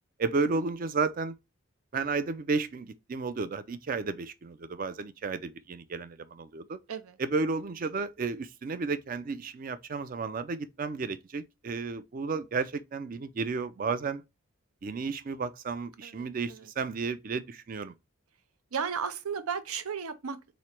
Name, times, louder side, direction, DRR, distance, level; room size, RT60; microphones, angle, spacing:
voice 1, 0.2-1.4 1.9-6.8 7.2-14.2 14.8-17.9, right 4 dB, 40° right, 0.3 m, -32 dB
voice 2, 16.0-16.7 18.7-20.5, right 6 dB, 90° right, 0.6 m, -35 dB
3.7 x 3.1 x 4.3 m
head